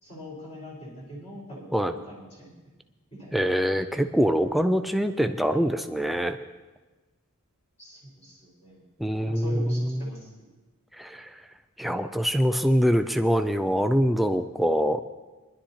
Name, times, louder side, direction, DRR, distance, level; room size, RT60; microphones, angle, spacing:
voice 1, 0.0-2.7 3.1-3.3 7.8-8.8 9.3-10.3, equal, 30° left, -6 dB, 4.7 m, -42 dB
voice 2, 3.3-6.4 9.0-10.0 11.0-11.3 11.8-15.0, equal, ahead, 7 dB, 0.4 m, -24 dB
22.5 x 11.5 x 2.9 m, 1.2 s
head